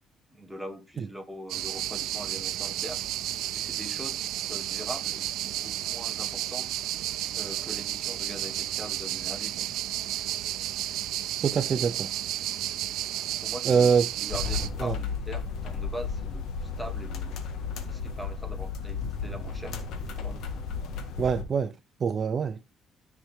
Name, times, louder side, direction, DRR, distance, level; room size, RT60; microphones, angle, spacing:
voice 1, 0.3-3.0 3.5-6.7 7.3-9.7 13.4-13.9 14.2-17.4 17.8-19.8 20.1-20.5, right 1 dB, ahead, 1.3 m, -42 dB
sound 1, 1.5-14.7, right 13 dB, 75° right, 0.6 m, -32 dB
voice 2, 11.4-12.1 13.7-14.1 14.8-15.0 21.2-21.7 22.0-22.6, right 6 dB, 35° right, 0.5 m, -24 dB
sound 2, 14.3-21.4, left 5 dB, 70° left, 1.7 m, -34 dB
13.0 x 5.8 x 3.5 m
cardioid pair, 155°, 0 cm